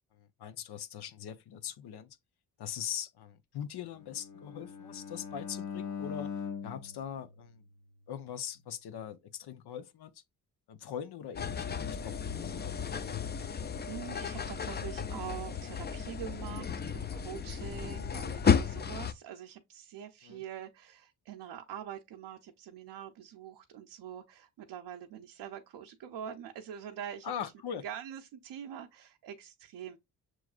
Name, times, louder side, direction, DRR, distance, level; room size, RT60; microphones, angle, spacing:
voice 1, 0.1-2.2 2.6-6.3 6.6-7.6 8.1-10.2 10.7-12.8 20.2-20.4 27.2-27.8, left 9 dB, 75° left, 0.7 m, -41 dB
Bowed string instrument, 4.0-8.1, left 6 dB, 45° left, 0.9 m, -42 dB
sound 1, 11.4-19.1, left 6 dB, 25° left, 0.4 m, -33 dB
voice 2, 13.9-27.3 27.7-30.0, right 9 dB, 80° right, 0.7 m, -44 dB
6.2 x 3.1 x 2.4 m
cardioid pair, 70°, 39 cm